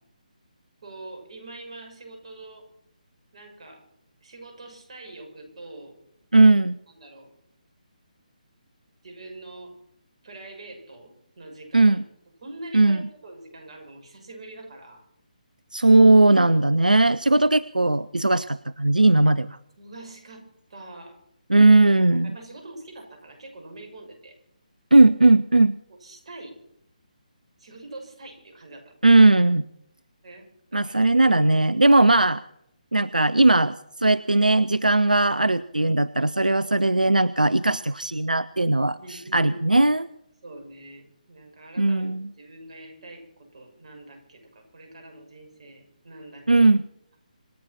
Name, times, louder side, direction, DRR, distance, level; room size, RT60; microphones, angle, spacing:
voice 1, 0.8-2.7 3.3-3.8 4.2-6.0 6.9-7.3 9.0-9.7 10.2-12.0 12.4-15.0 19.8-21.2 21.6-24.4 25.9-26.6 27.6-28.9 30.2-31.0 39.0-39.7 40.4-46.7, right 2 dB, 50° right, 3 dB, 6.4 m, -44 dB
voice 2, 6.3-6.7 11.7-12.0 12.7-13.0 15.7-19.6 21.5-22.3 24.9-25.8 29.0-29.6 30.7-32.4 32.9-40.1 41.8-42.3 46.5-46.8, right 2 dB, 90° right, 18 dB, 0.6 m, -18 dB
26.5 x 9.0 x 5.9 m, 0.74 s
figure-of-eight pair, 145°, 4 cm